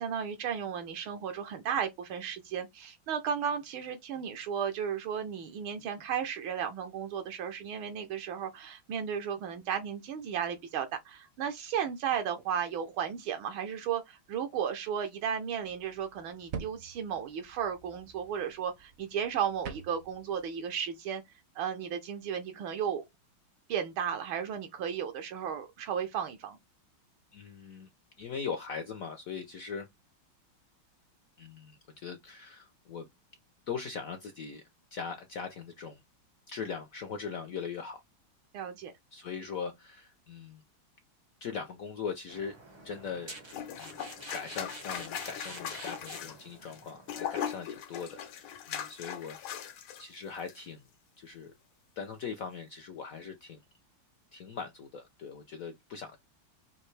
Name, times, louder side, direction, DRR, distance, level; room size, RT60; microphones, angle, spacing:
voice 1, 0.0-21.2 21.5-23.0 23.7-26.6 38.5-38.9, right 8 dB, 80° right, 1.6 m, -34 dB
sound 1, 15.6-20.5, right 6 dB, 60° right, 0.9 m, -46 dB
voice 2, 27.3-27.9 28.2-29.9 31.4-33.1 33.7-34.6 34.9-36.0 36.5-38.0 39.1-40.6 41.4-42.6 42.8-43.4 43.8-44.0 44.3-50.8 51.2-51.5 52.0-53.6 54.3-56.2, left 6 dB, 65° left, 0.8 m, -40 dB
sound 2, 42.3-47.3, right 2 dB, 45° right, 0.3 m, -48 dB
sound 3, 43.5-50.0 50.3-50.5, left 9 dB, 85° left, 1.7 m, -39 dB
5.5 x 2.7 x 3.2 m
omnidirectional pair, 2.3 m